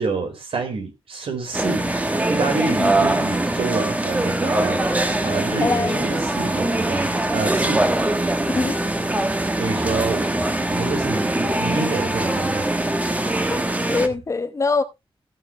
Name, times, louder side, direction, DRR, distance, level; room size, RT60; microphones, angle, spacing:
voice 1, 0.0-1.9 2.3-7.9 9.6-10.3 10.7-12.6, right 4 dB, 75° right, 4.5 m, -28 dB
sound 1, 1.5-14.1, right 1 dB, 15° right, 1.2 m, -22 dB
voice 2, 5.6-6.0 8.4-8.8 13.5-13.7 13.9-14.8, left 4 dB, 35° left, 1.0 m, -23 dB
15.5 x 7.0 x 3.1 m
wide cardioid pair, 170°, 10 cm